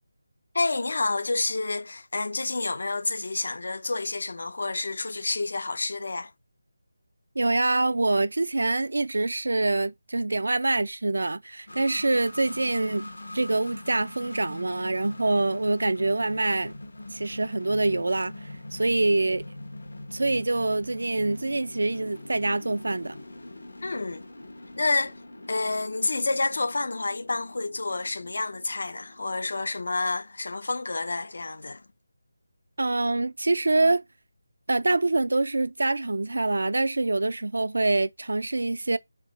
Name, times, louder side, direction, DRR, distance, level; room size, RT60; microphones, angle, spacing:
voice 1, 0.5-6.3 23.8-24.2 24.8-25.1 25.5-31.8, left 3 dB, 55° left, 0.4 m, -29 dB
voice 2, 7.4-13.1 13.3-16.7 17.1-18.3 18.7-19.4 20.1-23.2 32.8-34.0 34.7-39.0, right 2 dB, 70° right, 0.4 m, -25 dB
sound 1, 11.7-30.2, left 1 dB, 75° left, 1.1 m, -43 dB
3.5 x 3.0 x 3.6 m
figure-of-eight pair, 175°, 0 cm